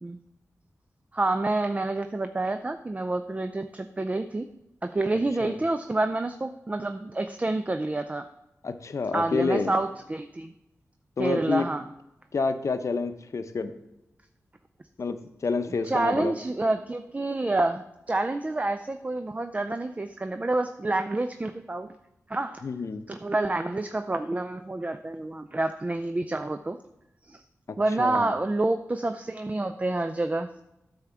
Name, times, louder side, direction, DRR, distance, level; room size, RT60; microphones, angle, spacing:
voice 1, 1.1-4.5 4.8-8.3 9.1-10.5 11.2-11.8 15.8-21.9 22.3-22.6 23.1-26.8 27.2-27.4 27.8-30.6, right 2 dB, 25° right, 9 dB, 0.4 m, -28 dB
voice 2, 8.6-9.7 11.2-11.7 12.3-13.7 15.0-15.2 15.4-16.3 22.6-23.0 28.0-28.3, left 4 dB, 65° left, 9 dB, 0.7 m, -28 dB
9.5 x 3.6 x 6.8 m, 0.90 s
cardioid pair, 50°, 6 cm